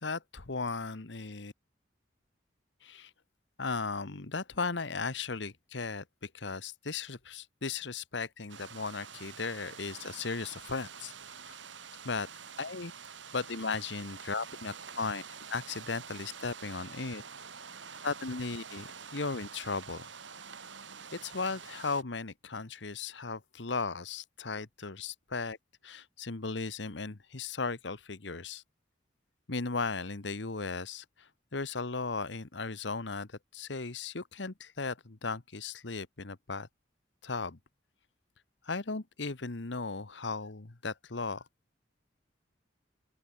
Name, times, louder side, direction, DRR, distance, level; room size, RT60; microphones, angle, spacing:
voice 1, 0.0-1.5 2.8-3.1 3.6-11.1 11.4-11.6 12.0-12.3 12.6-12.9 13.3-15.2 15.5-17.2 18.0-20.1 21.1-25.6 25.8-28.6 29.5-36.7 37.2-37.6 38.6-41.4, left 4 dB, 65° left, 1.3 m, -36 dB
sound 1, 8.5-22.0, right 6 dB, 75° right, 3.6 m, -47 dB
open air
head